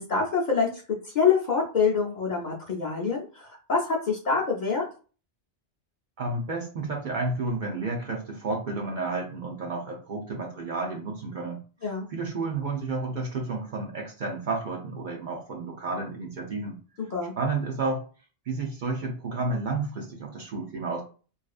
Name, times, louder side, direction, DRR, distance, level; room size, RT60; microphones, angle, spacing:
voice 1, 0.0-4.8 11.8-12.1 17.0-17.3, left 5 dB, 55° left, -3 dB, 0.6 m, -26 dB
voice 2, 6.2-11.6 12.1-16.8 17.4-18.0 18.5-21.0, right 3 dB, 55° right, 0 dB, 0.6 m, -31 dB
2.7 x 2.3 x 2.4 m, 0.37 s
omnidirectional pair, 1.2 m